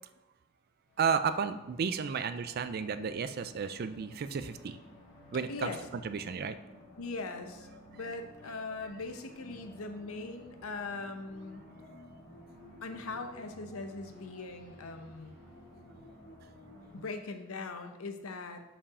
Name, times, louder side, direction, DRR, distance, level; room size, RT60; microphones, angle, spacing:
sound 1, 0.9-17.0, left 1 dB, 50° left, 2.1 m, -54 dB
voice 1, 1.0-4.8 5.3-5.7 6.0-6.6 8.9-9.0, right 6 dB, 45° right, 11 dB, 0.4 m, -32 dB
voice 2, 7.0-7.7 7.9-11.7 12.8-15.4 16.9-18.8, left 3 dB, 90° left, 7 dB, 0.7 m, -40 dB
5.6 x 4.8 x 4.8 m, 1.0 s
head